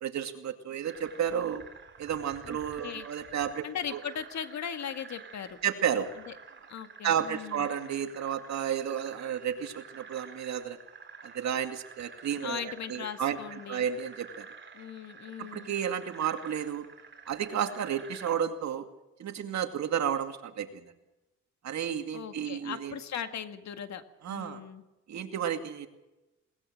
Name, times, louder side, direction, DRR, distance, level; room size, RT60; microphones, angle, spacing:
voice 1, 0.0-1.6 2.0-3.7 3.9-4.0 5.6-6.1 7.0-10.8 11.2-13.4 13.7-14.5 15.4-16.9 17.3-18.9 19.2-20.9 21.6-22.9 24.2-24.6 25.1-25.9, right 9 dB, 65° right, 6 dB, 2.4 m, -32 dB
sound 1, 0.8-18.4, right 5 dB, 40° right, 3.6 m, -50 dB
voice 2, 3.6-5.6 6.3-6.4 6.7-7.7 12.4-13.9 14.7-15.7 22.1-24.8, left 8 dB, 65° left, 8 dB, 2.0 m, -38 dB
21.0 x 19.0 x 6.5 m, 1.0 s
cardioid pair, 90°, 30 cm